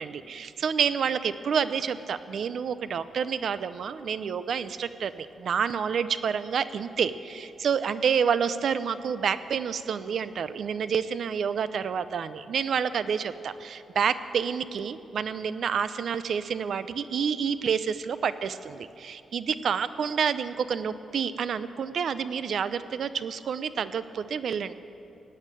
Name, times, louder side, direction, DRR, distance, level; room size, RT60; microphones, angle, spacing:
voice 1, 0.0-24.7, right 7 dB, 55° right, 13 dB, 0.6 m, -29 dB
17.5 x 8.8 x 9.1 m, 2.6 s
wide cardioid pair, 160°, 0 cm